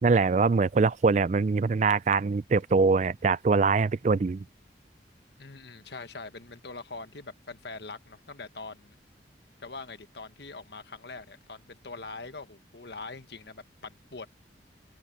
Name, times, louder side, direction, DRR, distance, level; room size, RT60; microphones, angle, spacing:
voice 1, 0.0-4.4, right 4 dB, 40° right, 0.4 m, -23 dB
voice 2, 5.4-9.0 9.6-14.3, left 3 dB, 65° left, 1.4 m, -43 dB
head